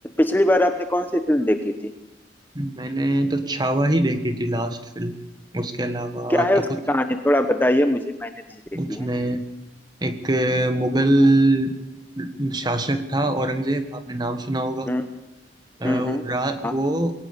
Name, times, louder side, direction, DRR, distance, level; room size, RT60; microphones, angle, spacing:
voice 1, 0.2-1.9 6.3-8.3 8.9-9.1 14.9-15.0 15.8-16.2 16.6-16.7, left 1 dB, 10° left, 7 dB, 1.0 m, -21 dB
voice 2, 2.5-5.2 5.5-6.8 8.7-9.4 10.0-11.7 12.1-14.9 15.8-17.1, right 1 dB, 25° right, 8 dB, 1.6 m, -23 dB
22.0 x 18.0 x 6.9 m, 0.97 s
head